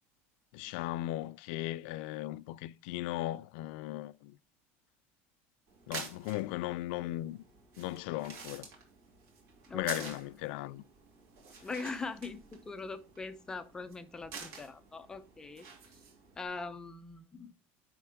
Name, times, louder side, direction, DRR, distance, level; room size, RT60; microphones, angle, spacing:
voice 1, 0.5-4.3 5.9-7.4 7.8-8.7 9.7-10.8, left 16 dB, 65° left, 0.4 m, -37 dB
sound 1, 5.7-16.5, right 5 dB, 50° right, 2.8 m, -49 dB
voice 2, 9.7-10.2 11.6-15.7 16.4-17.5, left 4 dB, 10° left, 0.6 m, -42 dB
10.5 x 3.6 x 3.5 m
cardioid pair, 170°, 6 cm